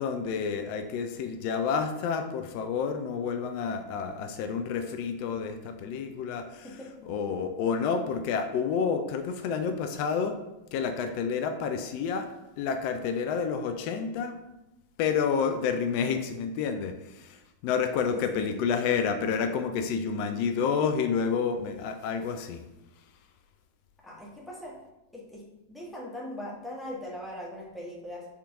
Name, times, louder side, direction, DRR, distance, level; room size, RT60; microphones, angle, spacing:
voice 1, 0.0-6.7 7.1-10.4 10.7-12.3 12.6-14.3 15.0-17.4 17.6-22.6, left 6 dB, 45° left, 6 dB, 0.3 m, -29 dB
voice 2, 6.6-7.2 18.0-18.6 24.0-24.7 25.1-28.3, left 1 dB, 5° left, -4 dB, 1.0 m, -41 dB
3.5 x 2.9 x 3.5 m, 0.98 s
figure-of-eight pair, 90°, 0 cm